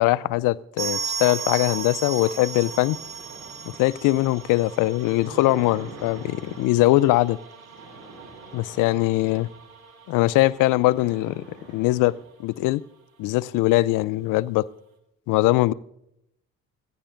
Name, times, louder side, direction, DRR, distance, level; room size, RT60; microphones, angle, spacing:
voice 1, 0.0-3.0 3.8-7.4 8.5-9.5 10.1-12.2 12.4-12.8 13.2-14.7 15.3-15.7, left 18 dB, 55° left, 0.5 m, -21 dB
sound 1, 0.8-11.3 11.6-11.7 11.9-12.0 12.6-12.7, right 7 dB, 85° right, 1.1 m, -36 dB
sound 2, 2.1-7.0 7.6-9.6 10.1-10.2 10.4-12.3, right 2 dB, 70° right, 3.7 m, -45 dB
26.0 x 15.5 x 2.6 m
figure-of-eight pair, 50°, 40 cm